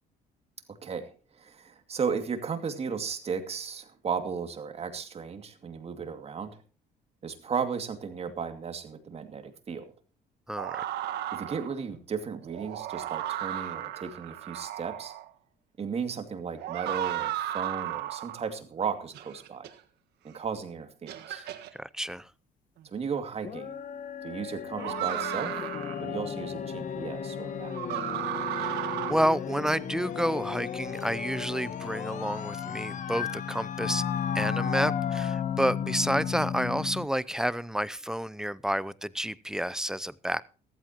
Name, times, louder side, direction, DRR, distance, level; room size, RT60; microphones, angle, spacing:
voice 1, 0.8-6.6 7.2-9.9 11.3-15.1 15.8-19.7 20.2-21.4 22.8-23.7 24.2-25.7 26.0-27.8, right 6 dB, 35° right, 8 dB, 2.4 m, -35 dB
voice 2, 10.5-10.8 21.3-21.4 21.8-22.3 28.5-34.0 34.3-40.4, equal, 5° right, 18 dB, 0.6 m, -30 dB
sound 1, 10.6-11.8 12.5-15.3 16.6-18.5 19.1-19.7 20.5-20.6 21.1-21.7 23.2-23.3 24.8-26.0 27.7-29.1, right 12 dB, 75° right, 1.6 m, -34 dB
sound 2, 23.4-37.1, left 8 dB, 50° left, 1.5 m, -34 dB
16.0 x 14.5 x 3.0 m, 0.37 s
cardioid pair, 110°, 17 cm